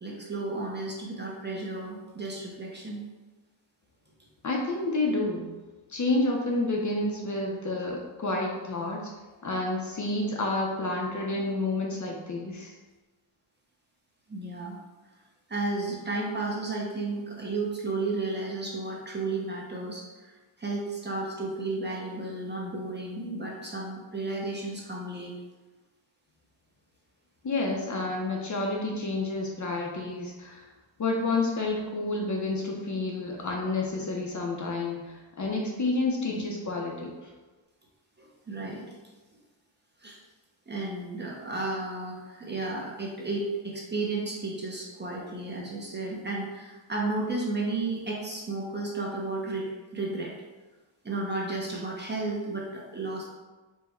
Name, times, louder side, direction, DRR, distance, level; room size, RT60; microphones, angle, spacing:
voice 1, 0.0-3.0 14.3-14.8 15.5-20.3 20.6-25.3 36.3-36.4 38.2-39.0 40.0-40.2 40.7-50.3 51.0-53.3, right 2 dB, 20° right, -3 dB, 0.6 m, -33 dB
voice 2, 4.4-5.5 5.9-9.1 9.4-12.7 27.4-30.7 31.0-37.1, left 2 dB, 40° left, -1 dB, 0.6 m, -29 dB
4.6 x 2.1 x 4.2 m, 1.2 s
wide cardioid pair, 170°, 48 cm